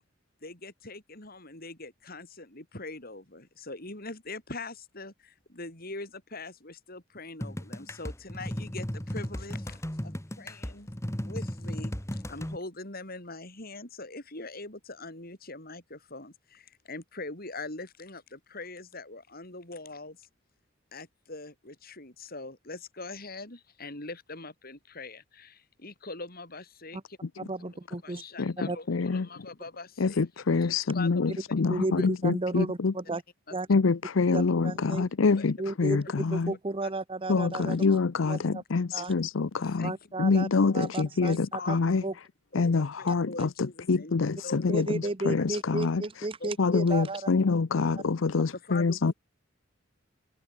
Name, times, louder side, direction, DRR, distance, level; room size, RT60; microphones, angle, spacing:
voice 1, 0.4-10.9 11.2-20.3 20.9-27.2 27.7-31.5 32.0-32.1 32.6-32.7 33.0-33.2 33.5-33.6 35.0-35.1 35.4-35.5 36.8-36.9 38.2-38.4 39.0-39.1 39.6-40.0 41.6-41.8 43.0-44.7 45.0-45.5 46.4-46.5 48.5-49.1, left 3 dB, 50° left, 6.8 m, -43 dB
sound 1, 7.4-12.6, equal, 15° left, 2.0 m, -35 dB
voice 2, 27.4-28.2 28.7-28.8 31.7-33.2 33.5-33.7 34.3-35.1 35.6-36.0 36.3-38.0 38.3-38.6 38.9-39.1 39.8-40.5 40.7-41.8 42.0-42.1 44.7-47.2, right 2 dB, 25° right, 0.9 m, -33 dB
voice 3, 28.9-29.2 30.0-32.9 33.7-36.5 37.3-39.9 40.2-42.0 42.6-43.5 43.9-44.9 45.3-46.0 46.6-49.1, left 4 dB, 75° left, 0.6 m, -26 dB
head